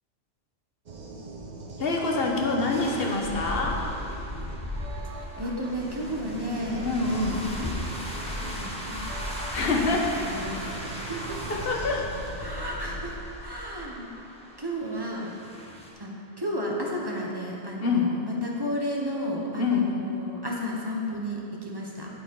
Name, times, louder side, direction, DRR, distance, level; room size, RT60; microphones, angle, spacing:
sound 1, 0.9-13.1, right 2 dB, 45° right, 0.7 m, -42 dB
voice 1, 1.8-3.8 6.8-7.5 9.5-10.1 11.5-12.0 17.8-18.1 19.6-19.9, left 3 dB, 50° left, 0 dB, 1.3 m, -25 dB
sound 2, 2.7-15.9, left 1 dB, 5° left, 1.2 m, -37 dB
voice 2, 5.4-6.9 7.5-7.7 8.5-9.2 9.6-11.6 12.4-14.1 14.6-15.3 16.0-16.1 16.4-22.1, equal, 20° right, -3 dB, 1.2 m, -33 dB
8.5 x 8.3 x 4.7 m, 2.9 s
omnidirectional pair, 1.3 m